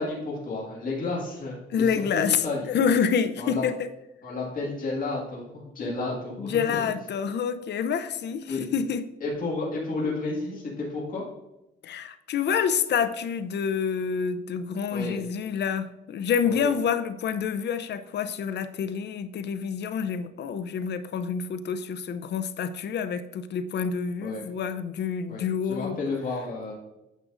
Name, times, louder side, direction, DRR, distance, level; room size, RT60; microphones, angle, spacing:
voice 1, 0.0-2.7 3.4-3.6 4.2-6.9 8.5-8.6 9.2-11.2 14.9-15.2 16.4-16.7 24.2-24.5 25.3-26.7, left 3 dB, 45° left, -5 dB, 2.1 m, -32 dB
voice 2, 1.7-3.7 5.8-6.0 6.4-9.0 11.8-26.0, left 7 dB, 60° left, 12 dB, 0.6 m, -27 dB
9.1 x 6.1 x 2.6 m, 0.95 s
cardioid pair, 90°, 20 cm